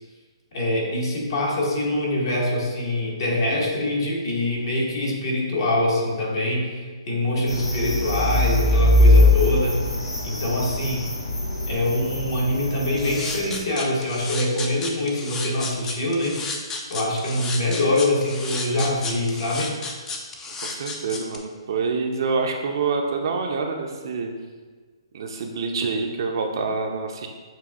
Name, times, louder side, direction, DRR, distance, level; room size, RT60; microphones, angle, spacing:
voice 1, 0.5-9.8 10.2-11.0 11.7-16.4 16.9-19.7, left 1 dB, 50° left, -3 dB, 1.3 m, -24 dB
sound 1, 7.5-13.6, left 1 dB, 85° left, 1.0 m, -21 dB
sound 2, 13.0-21.4, left 4 dB, 15° left, 0.4 m, -32 dB
voice 2, 20.6-24.3 25.1-27.3, right 4 dB, 55° right, 3 dB, 0.5 m, -26 dB
7.2 x 2.7 x 2.4 m, 1.4 s
figure-of-eight pair, 135°, 3 cm